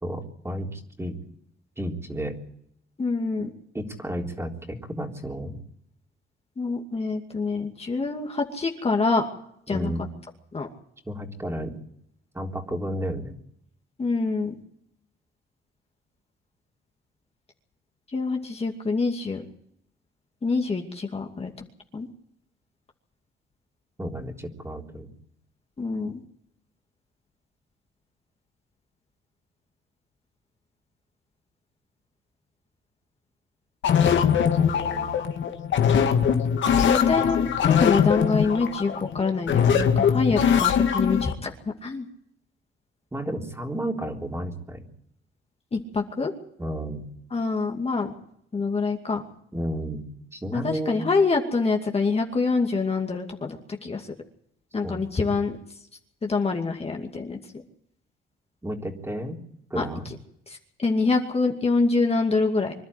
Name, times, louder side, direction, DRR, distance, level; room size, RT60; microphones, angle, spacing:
voice 1, 0.0-1.1 1.8-2.4 3.7-5.6 9.7-10.0 11.1-11.7 12.3-13.4 24.0-25.1 34.0-35.2 43.1-44.8 46.6-47.0 49.5-50.0 50.3-51.1 54.8-55.0 58.6-59.4 59.7-60.1, right 1 dB, 15° right, 1 dB, 3.8 m, -32 dB
voice 2, 3.0-3.5 6.6-9.3 9.7-9.9 10.5-10.7 14.0-14.5 18.1-19.5 20.4-21.5 21.9-22.1 25.8-26.1 36.9-41.5 41.8-42.1 45.7-46.3 47.3-48.1 48.5-49.2 50.5-54.1 54.7-55.6 56.2-57.4 59.8-59.9 60.5-62.7, left 4 dB, 30° left, 2 dB, 2.5 m, -25 dB
sound 1, 33.8-41.3, left 8 dB, 70° left, 2.1 m, -21 dB
25.5 x 11.5 x 9.8 m, 0.71 s
cardioid pair, 90°, 20 cm